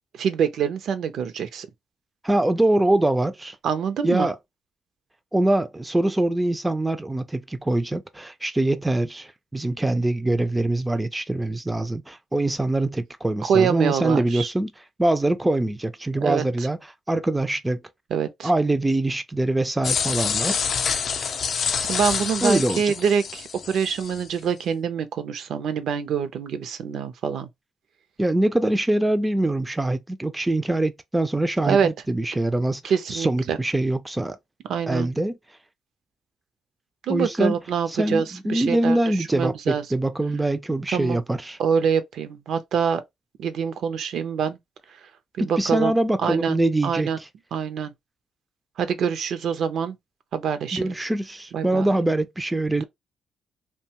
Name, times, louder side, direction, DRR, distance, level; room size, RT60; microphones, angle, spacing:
voice 1, 0.1-1.7 3.6-4.3 13.5-14.5 16.1-16.4 18.1-18.5 21.9-27.5 31.6-31.9 32.8-33.6 34.7-35.1 37.1-39.0 39.3-39.8 40.9-41.2 41.6-43.0 43.4-44.6 45.4-45.9 46.2-46.6 46.8-47.2 47.5-47.9 48.8-50.0 50.3-50.9 51.5-51.9, right 7 dB, 70° right, 0.5 m, -25 dB
voice 2, 2.2-3.6 4.0-4.4 5.3-14.7 15.0-17.8 18.4-20.6 22.4-22.9 28.2-32.8 33.1-34.4 34.9-35.4 37.1-37.6 37.9-41.6 45.4-47.3 50.7-52.8, right 1 dB, 10° right, 0.3 m, -23 dB
sound 1, 19.8-24.3, left 6 dB, 55° left, 0.4 m, -27 dB
2.7 x 2.2 x 2.9 m
cardioid pair, 90°, 0 cm